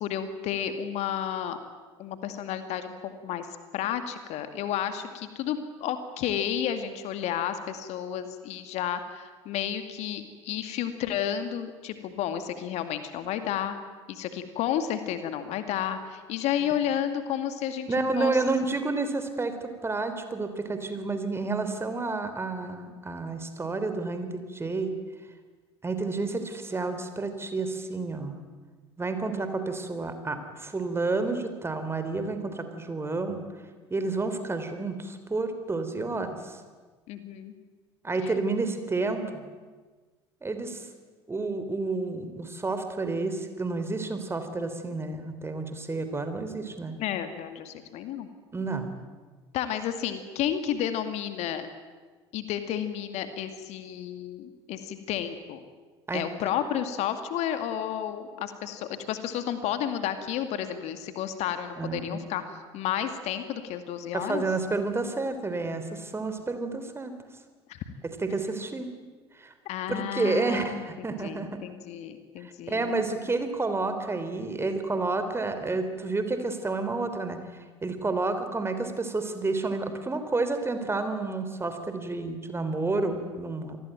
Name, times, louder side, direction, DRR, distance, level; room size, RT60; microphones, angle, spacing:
voice 1, 0.0-1.6 2.0-3.5 3.7-13.8 14.1-17.9 18.2-18.3 37.1-37.5 38.2-38.3 47.0-48.3 49.5-51.7 52.3-55.6 56.1-62.4 62.7-64.4 67.7-67.8 69.7-73.0, left 10 dB, 50° left, 9 dB, 2.3 m, -31 dB
voice 2, 17.9-24.9 25.8-28.4 29.0-33.4 33.9-36.6 38.0-39.4 40.4-40.8 41.3-46.9 48.5-48.9 56.1-56.2 61.8-62.2 64.1-67.1 68.2-68.9 69.4-69.5 69.9-71.5 72.4-77.4 77.8-83.8, right 3 dB, 15° right, 8 dB, 3.6 m, -30 dB
27.5 x 20.0 x 9.1 m, 1.4 s
figure-of-eight pair, 65°, 14 cm